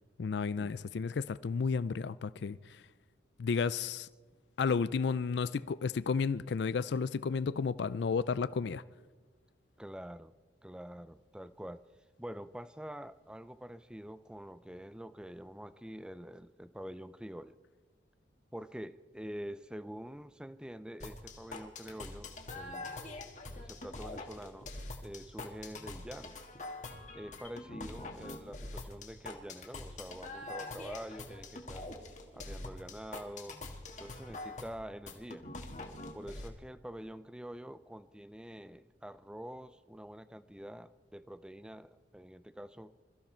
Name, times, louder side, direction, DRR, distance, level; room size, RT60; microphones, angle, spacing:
voice 1, 0.2-2.8 3.4-4.1 4.6-8.8, left 5 dB, 70° left, 0.4 m, -32 dB
voice 2, 9.8-10.3 10.6-11.8 12.2-17.6 18.5-22.9 23.6-24.7 25.0-26.4 27.1-31.9 32.3-33.6 34.0-35.4 36.1-42.9, equal, 5° right, 0.4 m, -46 dB
sound 1, 21.0-36.5, left 2 dB, 40° left, 1.7 m, -44 dB
22.5 x 14.0 x 4.4 m
head